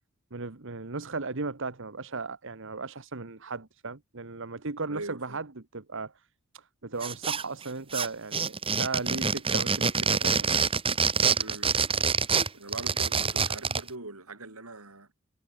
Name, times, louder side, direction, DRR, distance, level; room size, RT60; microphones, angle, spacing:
voice 1, 0.3-6.1 6.5-10.7, right 3 dB, 60° right, 1.4 m, -36 dB
voice 2, 4.9-5.4 11.0-11.7 12.5-15.1, right 2 dB, 85° right, 5.5 m, -42 dB
sound 1, 7.0-7.6 7.9-13.9, right 5 dB, 25° right, 1.9 m, -26 dB
head